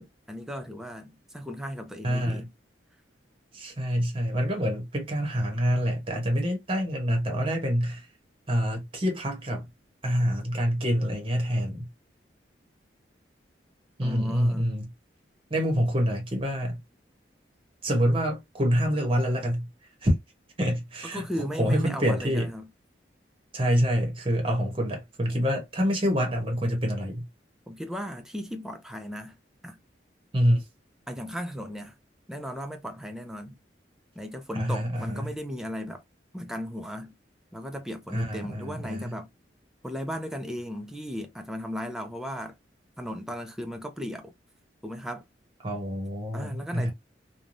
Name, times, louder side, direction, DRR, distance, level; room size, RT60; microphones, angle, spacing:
voice 1, 0.0-2.5 14.0-14.8 21.1-22.7 27.7-29.4 29.6-29.8 31.1-32.0 32.3-33.6 34.1-36.0 36.3-37.1 37.5-39.3 39.8-42.6 43.0-44.3 44.8-45.2 46.3-46.9, equal, 5° right, 0.5 m, -36 dB
voice 2, 2.0-2.5 3.5-8.1 8.5-9.6 10.0-11.9 14.0-14.9 15.5-16.8 17.8-19.7 20.0-20.1 20.6-21.2 21.6-22.5 23.5-27.3 30.3-30.6 34.5-35.3 38.1-39.1 45.6-46.9, equal, 30° right, 1.0 m, -26 dB
3.2 x 2.3 x 2.6 m
head